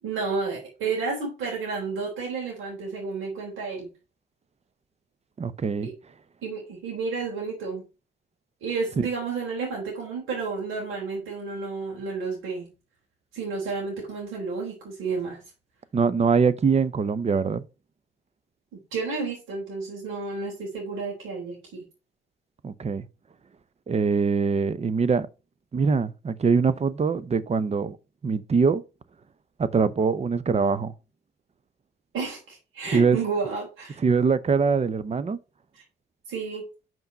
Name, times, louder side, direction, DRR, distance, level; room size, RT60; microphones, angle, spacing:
voice 1, 0.0-3.9 5.8-5.9 6.4-7.9 8.6-12.7 13.3-15.4 18.7-21.8 32.1-34.0 35.7-35.8 36.3-36.7, right 4 dB, 85° right, 3.7 m, -31 dB
voice 2, 5.4-5.9 9.0-9.1 15.9-17.6 22.6-23.1 23.9-25.3 25.7-28.0 28.2-28.8 29.6-30.9 32.9-33.2 34.0-35.4, right 5 dB, 35° right, 0.7 m, -23 dB
5.7 x 5.4 x 5.2 m
cardioid pair, 90°, 20 cm